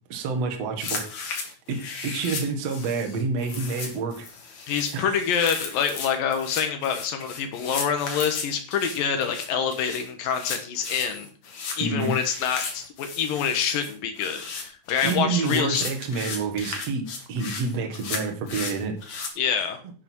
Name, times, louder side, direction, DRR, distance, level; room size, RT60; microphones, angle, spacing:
voice 1, 0.1-1.1 1.7-4.3 4.9-5.1 11.8-12.1 15.0-19.0, right 4 dB, 75° right, 4 dB, 1.5 m, -28 dB
sound 1, 0.8-19.3, left 4 dB, 50° left, 2.4 m, -35 dB
voice 2, 4.7-11.3 11.8-15.8 19.4-19.8, left 7 dB, 85° left, 6 dB, 2.0 m, -26 dB
11.0 x 7.7 x 4.6 m, 0.39 s
omnidirectional pair, 5.8 m